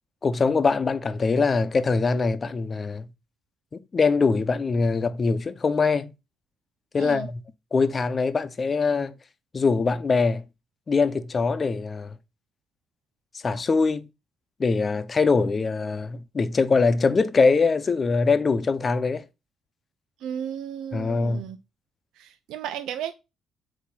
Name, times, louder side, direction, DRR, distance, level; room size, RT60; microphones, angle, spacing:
voice 1, 0.2-3.1 3.9-6.1 6.9-7.4 7.7-9.1 9.5-10.5 10.9-12.2 13.4-14.1 14.6-19.2 20.9-21.5, left 4 dB, 35° left, 0.8 m, -23 dB
voice 2, 7.0-7.3 20.2-21.6 22.2-23.1, right 9 dB, 90° right, 0.5 m, -34 dB
8.4 x 3.0 x 5.7 m
cardioid pair, 90°, 0 cm